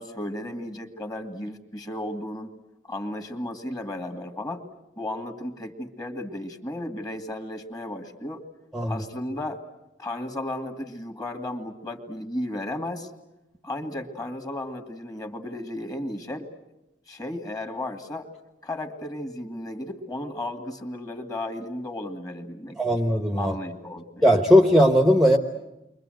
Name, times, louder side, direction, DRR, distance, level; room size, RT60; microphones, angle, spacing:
voice 1, 0.0-2.5 2.8-4.6 5.0-8.4 8.9-9.6 10.0-13.1 13.6-16.5 17.1-18.3 18.6-23.0 23.4-24.3 24.5-24.6, left 1 dB, 20° left, 5 dB, 2.3 m, -34 dB
voice 2, 8.7-9.0 22.8-23.5 24.2-25.4, equal, ahead, 3 dB, 1.2 m, -18 dB
30.0 x 24.0 x 7.9 m, 0.95 s
head